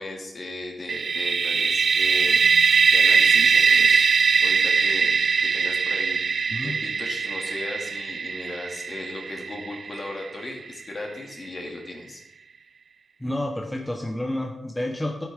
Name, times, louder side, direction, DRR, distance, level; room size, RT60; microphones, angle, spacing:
voice 1, 0.0-4.1 4.4-5.1 5.4-12.2, left 2 dB, 45° left, 0 dB, 2.5 m, -37 dB
sound 1, 0.9-10.6, right 5 dB, 65° right, 0.3 m, -21 dB
voice 2, 13.2-15.2, left 1 dB, 10° left, 1 dB, 1.1 m, -29 dB
12.5 x 9.4 x 3.8 m, 0.89 s
wide cardioid pair, 115°, 0 cm